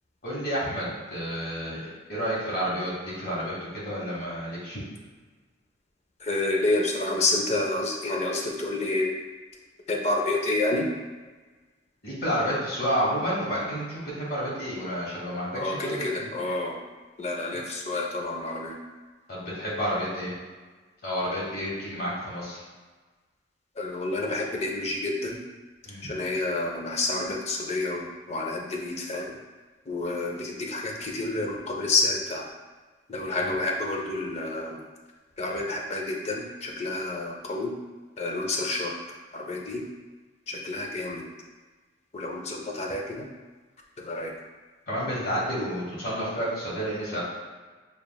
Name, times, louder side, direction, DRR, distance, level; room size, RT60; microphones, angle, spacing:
voice 1, 0.2-4.8 12.0-16.3 19.3-20.3 21.0-22.6 25.9-26.1 33.4-33.5 44.9-47.2, equal, 50° left, -7 dB, 1.1 m, -30 dB
voice 2, 6.2-9.1 9.9-10.9 15.5-16.8 17.2-18.8 23.8-25.4 26.0-29.3 29.9-32.4 33.1-34.8 35.4-37.7 38.2-38.9 39.3-39.8 40.5-41.2 42.1-43.3 44.0-44.3, left 2 dB, 35° left, 0 dB, 0.5 m, -29 dB
6.9 x 2.4 x 2.2 m, 1.3 s
head